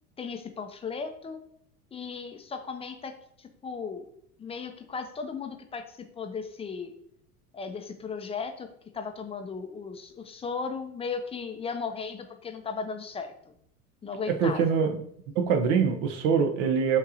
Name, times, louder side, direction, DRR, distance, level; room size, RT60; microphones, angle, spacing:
voice 1, 0.2-1.4 1.9-3.1 3.4-4.1 4.4-6.9 7.5-8.7 8.9-13.3 14.0-14.8, left 5 dB, 15° left, 7 dB, 0.4 m, -36 dB
voice 2, 14.4-15.0 15.4-17.0, right 6 dB, 60° right, 6 dB, 0.8 m, -24 dB
6.6 x 2.9 x 2.7 m, 0.69 s
hypercardioid pair, 85°, 43 cm